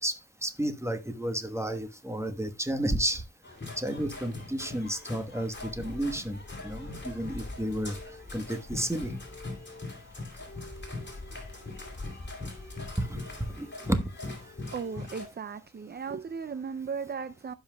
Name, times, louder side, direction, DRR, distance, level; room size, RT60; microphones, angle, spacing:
voice 1, 0.0-3.2 3.8-8.0 8.3-9.1 13.0-14.0, right 1 dB, 10° right, 1.2 m, -32 dB
sound 1, 3.4-15.3, left 2 dB, 40° left, 2.8 m, -41 dB
voice 2, 14.7-17.5, right 5 dB, 35° right, 0.4 m, -36 dB
16.0 x 5.6 x 2.2 m
wide cardioid pair, 75°, 30 cm